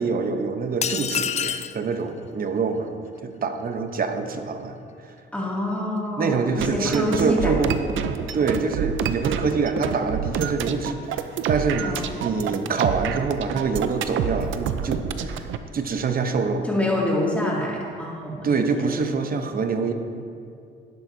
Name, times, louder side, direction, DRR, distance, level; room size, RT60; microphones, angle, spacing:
voice 1, 0.0-2.9 3.2-4.8 6.2-7.7 8.3-15.5 15.7-16.7 18.4-19.9, right 4 dB, 45° right, 7 dB, 0.8 m, -25 dB
sound 1, 0.8-1.8, left 8 dB, 35° left, 0.4 m, -26 dB
voice 2, 5.3-7.6 11.8-12.2 16.7-18.9, left 1 dB, 5° left, -4 dB, 2.3 m, -26 dB
sound 2, 6.6-15.6, right 8 dB, 75° right, 0.6 m, -28 dB
11.5 x 10.5 x 2.7 m, 2.4 s
cardioid pair, 90°, 20 cm